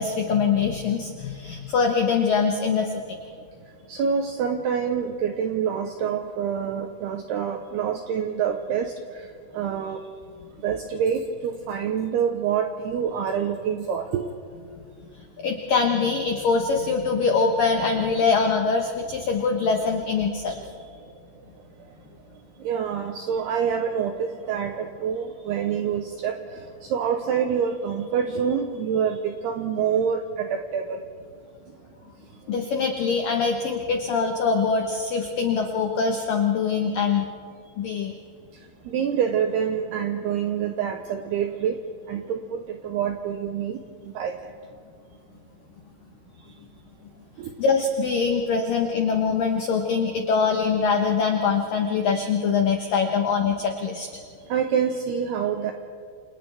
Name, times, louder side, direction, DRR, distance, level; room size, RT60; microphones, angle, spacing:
voice 1, 0.0-3.2 15.4-20.6 32.5-37.3 37.8-38.1 47.6-54.1, left 5 dB, 85° left, 3 dB, 1.9 m, -23 dB
voice 2, 3.9-9.2 9.5-10.0 10.6-14.3 22.6-31.0 38.9-41.8 42.1-44.5 47.4-47.6 54.5-55.7, right 7 dB, 85° right, 5 dB, 2.3 m, -26 dB
28.5 x 28.5 x 3.4 m, 2.2 s
omnidirectional pair, 5.8 m